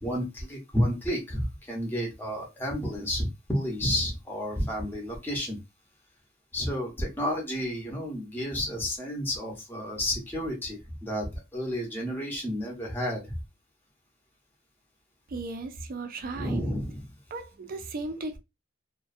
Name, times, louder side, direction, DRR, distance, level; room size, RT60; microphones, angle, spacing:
voice 1, 0.0-5.6 6.5-11.3 11.5-13.3 16.3-17.1, equal, 10° left, 0.6 m, -31 dB
voice 2, 15.3-16.6 17.3-18.4, right 3 dB, 45° right, 0.4 m, -36 dB
2.4 x 2.2 x 2.4 m
head